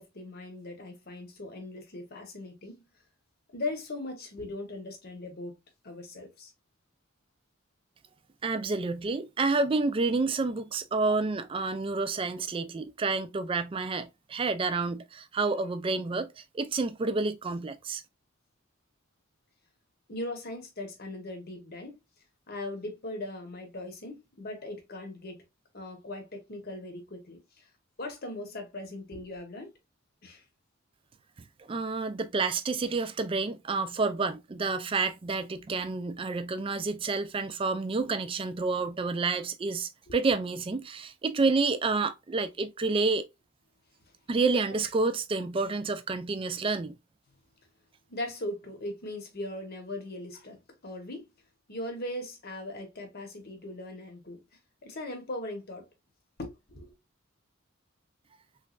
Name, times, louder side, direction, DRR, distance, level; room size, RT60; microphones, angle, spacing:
voice 1, 0.0-2.8 3.5-5.6 5.8-6.5 20.1-22.0 22.5-25.4 25.7-27.7 28.0-29.7 30.2-30.4 40.1-40.2 48.1-51.3 51.7-54.4 54.8-55.9 56.4-56.9, left 1 dB, 45° left, 1.0 m, -39 dB
voice 2, 8.4-18.0 31.7-43.2 44.3-46.9, right 3 dB, 25° right, 0.3 m, -29 dB
3.4 x 3.1 x 2.3 m
head